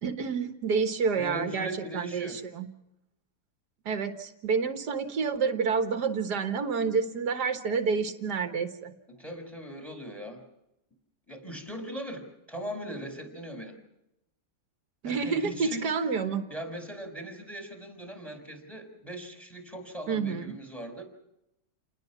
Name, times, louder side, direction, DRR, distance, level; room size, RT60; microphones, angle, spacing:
voice 1, 0.0-2.7 3.9-8.9 15.0-16.5 20.1-20.6, right 5 dB, 85° right, 7 dB, 2.0 m, -29 dB
voice 2, 1.2-2.4 9.1-10.4 11.3-13.8 15.0-15.8 16.5-21.0, equal, ahead, 4 dB, 5.6 m, -40 dB
29.0 x 20.0 x 6.1 m, 0.84 s
omnidirectional pair, 1.7 m